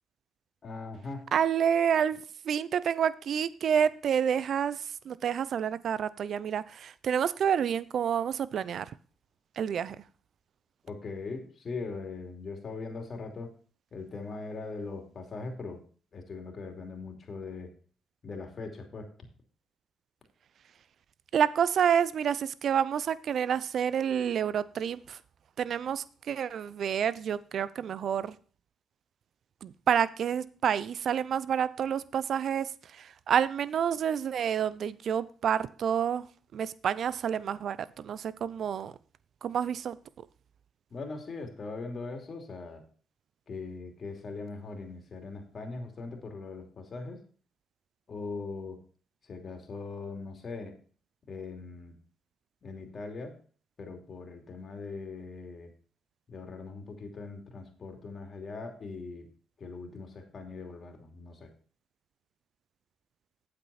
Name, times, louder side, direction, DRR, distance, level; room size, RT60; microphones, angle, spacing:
voice 1, 0.6-1.3 10.8-13.5 13.9-15.8 16.1-17.7 18.2-19.1 40.9-42.8 43.5-47.2 48.1-48.8 49.3-50.8 51.3-51.9 52.6-53.3 53.8-55.7 56.3-59.3 59.6-61.5, left 3 dB, 45° left, 4 dB, 2.8 m, -40 dB
voice 2, 1.3-8.9 9.6-10.0 21.3-25.2 25.6-28.3 29.6-36.3 36.5-38.9 39.4-40.0, right 8 dB, 65° right, 18 dB, 0.6 m, -29 dB
8.8 x 8.1 x 4.2 m, 0.41 s
supercardioid pair, 60°, 0 cm